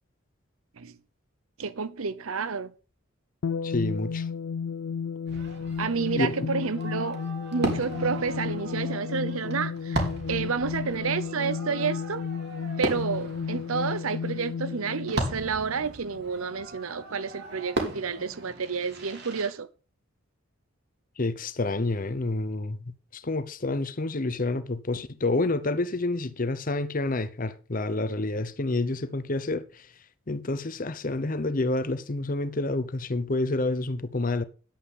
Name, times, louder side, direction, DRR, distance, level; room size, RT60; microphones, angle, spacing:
voice 1, 1.6-2.7 5.8-7.2 7.5-10.0 10.3-12.2 12.8-19.7, right 5 dB, 80° right, 0.8 m, -30 dB
sound 1, 3.4-16.3, left 6 dB, 70° left, 0.4 m, -33 dB
voice 2, 3.6-4.3 6.1-6.3 21.2-29.9 30.3-34.4, left 2 dB, 40° left, 0.8 m, -28 dB
Fireworks, 5.3-19.5, right 2 dB, 50° right, 2.7 m, -37 dB
10.5 x 8.2 x 5.5 m
head